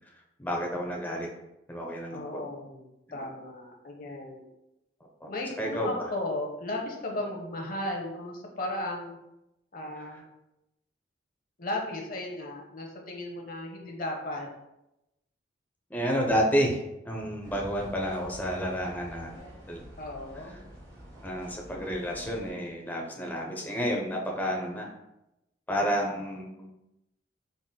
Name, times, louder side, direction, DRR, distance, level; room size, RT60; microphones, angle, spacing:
voice 1, 0.4-1.3 1.7-2.4 3.2-3.3 5.2-5.3 5.6-5.9 15.9-16.8 17.0-19.4 19.7-19.8 21.2-24.9 25.7-26.7, equal, 10° left, -1 dB, 0.5 m, -30 dB
voice 2, 2.1-4.5 5.2-9.2 9.7-10.2 11.6-14.5 20.0-20.6, left 1 dB, 50° left, 1 dB, 0.7 m, -35 dB
sound 1, 17.4-22.5, equal, 20° right, 1.2 m, -48 dB
3.9 x 3.7 x 2.2 m, 0.91 s
head